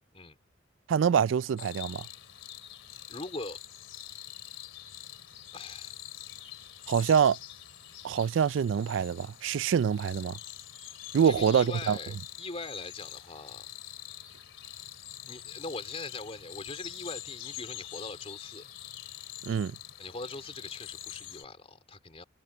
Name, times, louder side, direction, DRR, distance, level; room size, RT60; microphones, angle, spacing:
voice 1, 0.9-2.0 6.9-7.4 8.0-10.4 11.1-12.0 19.5-19.7, right 7 dB, 75° right, 0.3 m, -25 dB
sound 1, 1.6-21.4, left 12 dB, 80° left, 2.8 m, -45 dB
voice 2, 3.1-3.6 5.5-6.0 11.2-13.7 15.3-18.6 20.0-22.2, left 3 dB, 30° left, 3.1 m, -41 dB
head